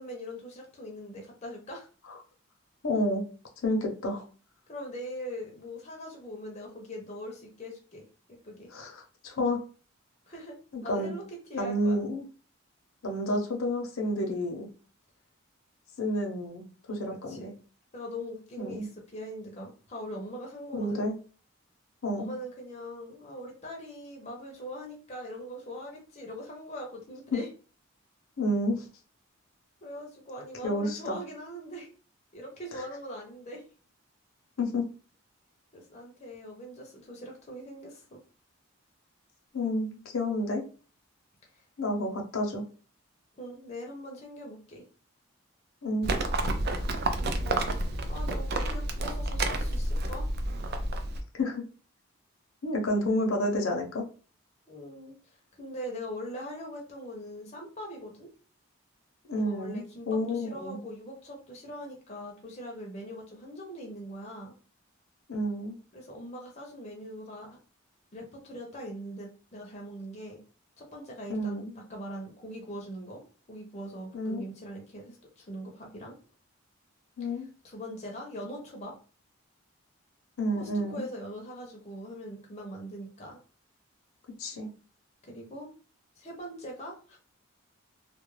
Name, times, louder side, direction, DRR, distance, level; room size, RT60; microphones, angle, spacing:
voice 1, 0.0-1.9 4.7-8.0 8.4-8.7 10.3-10.6 10.8-12.0 17.3-17.5 17.9-21.0 22.2-27.5 29.8-31.9 32.3-33.6 35.7-38.2 41.5-41.6 43.4-44.9 47.1-47.8 48.1-50.3 54.7-55.1 55.6-58.3 59.4-64.5 65.9-67.6 68.1-70.4 70.8-73.2 73.5-76.2 77.6-78.9 80.5-83.4 85.2-85.7 86.2-87.2, equal, 30° left, 0 dB, 0.5 m, -41 dB
voice 2, 2.8-3.2 3.6-4.2 8.7-9.6 10.9-11.1 11.5-12.2 13.0-14.7 16.0-17.5 18.6-18.9 20.7-21.1 22.0-22.3 28.4-28.9 30.6-31.2 34.6-34.8 39.5-40.6 41.8-42.6 45.8-46.1 51.4-51.6 52.6-54.0 59.3-60.8 65.3-65.8 71.3-71.7 74.1-74.4 77.2-77.5 80.4-81.1 84.4-84.7, left 1 dB, 75° left, 2 dB, 0.6 m, -30 dB
Livestock farm animals working animals, 46.0-51.2, right 2 dB, 50° right, 0.3 m, -30 dB
2.2 x 2.0 x 3.0 m, 0.38 s
head